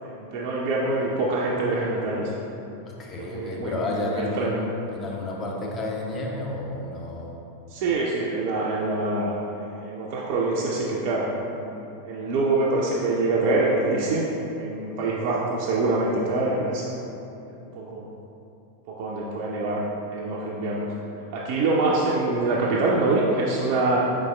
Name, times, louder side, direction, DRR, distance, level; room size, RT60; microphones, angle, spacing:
voice 1, 0.0-2.3 3.3-4.5 7.7-14.2 14.5-16.9 17.6-18.1 19.0-19.8 20.1-20.9 21.3-24.0, right 2 dB, 45° right, -5 dB, 0.4 m, -25 dB
voice 2, 3.0-7.3, left 2 dB, 25° left, -2 dB, 0.6 m, -31 dB
4.5 x 4.0 x 2.2 m, 2.8 s
figure-of-eight pair, 90°, 0 cm